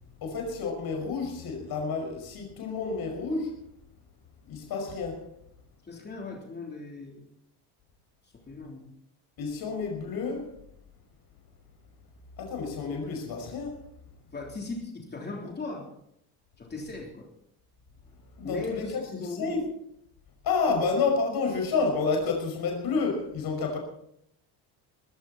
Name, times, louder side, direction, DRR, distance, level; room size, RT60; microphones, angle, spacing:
voice 1, 0.2-3.6 4.4-5.3 9.4-10.6 12.4-13.8 18.1-19.7 20.4-23.8, left 4 dB, 50° left, 5.6 m, -30 dB
voice 2, 5.8-7.3 8.3-8.9 14.3-15.9 16.6-17.3 18.4-19.5 20.7-20.8, left 3 dB, 20° left, 3.4 m, -38 dB
20.5 x 15.0 x 4.2 m
cardioid pair, 135°, 47 cm